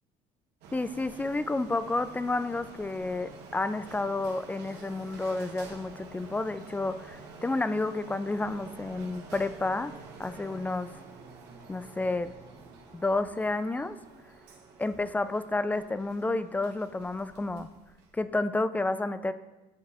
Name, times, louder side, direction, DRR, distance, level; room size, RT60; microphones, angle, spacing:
Printer, 0.6-18.3, right 3 dB, 80° right, 1.5 m, -49 dB
voice 1, 0.7-9.9 10.2-10.9 11.7-12.3 12.9-14.0 14.8-17.7 18.1-19.3, left 2 dB, 10° left, 13 dB, 0.3 m, -30 dB
10.5 x 4.5 x 3.6 m, 1.1 s
cardioid pair, 110°, 17 cm